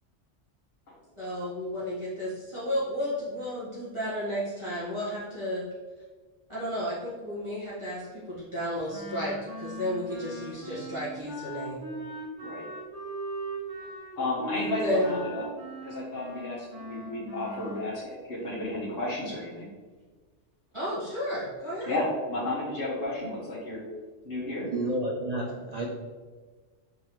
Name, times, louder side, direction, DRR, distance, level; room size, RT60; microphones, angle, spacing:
voice 1, 1.2-5.6 6.5-11.8 14.8-15.2 20.7-21.9, equal, 25° right, -11 dB, 1.2 m, -32 dB
Wind instrument woodwind instrument, 8.9-17.9, right 1 dB, 45° right, 1.2 m, -39 dB
voice 2, 14.2-15.5 15.8-19.7 21.9-23.8 24.2-24.7, left 2 dB, 55° left, -7 dB, 1.1 m, -32 dB
voice 3, 24.7-25.9, right 1 dB, 70° right, -1 dB, 0.3 m, -30 dB
3.9 x 3.6 x 3.0 m, 1.4 s
omnidirectional pair, 1.2 m